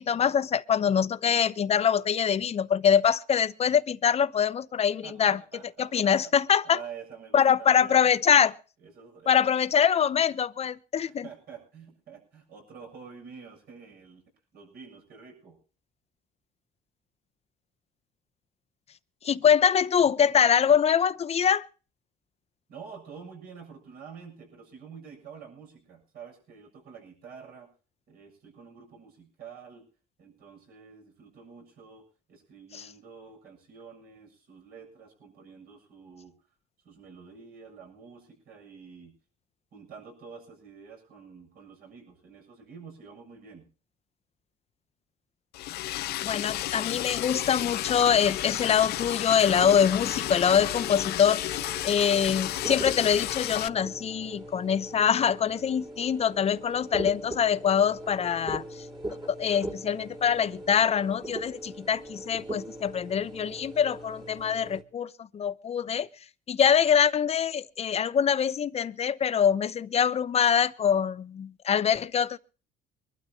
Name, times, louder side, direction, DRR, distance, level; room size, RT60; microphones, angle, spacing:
voice 1, 0.0-5.4 5.8-6.8 7.3-8.5 9.3-11.3 19.2-21.6 32.7-32.9 45.9-46.0 46.2-58.8 59.4-66.1 66.5-72.4, left 8 dB, 40° left, 0.8 m, -24 dB
voice 2, 5.0-6.3 6.6-8.1 8.8-9.5 11.2-14.2 14.5-15.6 22.7-27.7 28.1-29.9 30.2-36.3 36.8-39.1 39.7-43.7, right 6 dB, 65° right, 7.3 m, -48 dB
Liquid, 45.5-53.7, left 15 dB, 70° left, 0.6 m, -32 dB
sound 1, 49.5-64.8, right 1 dB, 30° right, 2.5 m, -40 dB
24.5 x 12.5 x 2.9 m
cardioid pair, 110°, 17 cm